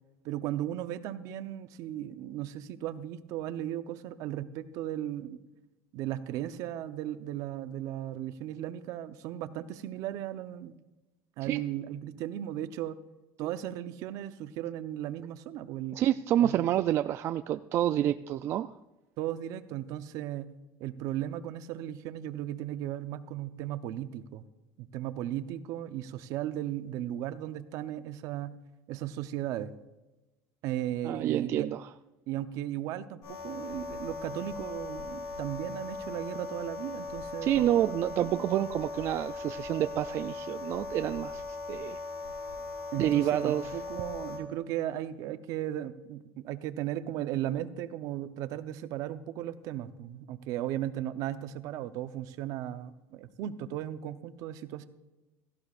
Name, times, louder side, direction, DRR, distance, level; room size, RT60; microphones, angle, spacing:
voice 1, 0.2-5.4 5.9-10.8 11.4-13.0 13.4-16.0 16.4-16.6 19.2-20.5 20.8-24.4 24.8-28.5 28.9-29.7 30.6-31.7 32.3-38.6 42.9-54.8, right 12 dB, 60° right, 11 dB, 0.7 m, -36 dB
voice 2, 15.9-18.7 31.0-31.8 37.4-42.0 43.0-43.7, right 12 dB, 40° right, 10 dB, 0.3 m, -28 dB
sound 1, 33.2-44.4, left 3 dB, 90° left, 5.1 m, -39 dB
16.5 x 14.0 x 2.5 m, 1.1 s
cardioid pair, 155°, 7 cm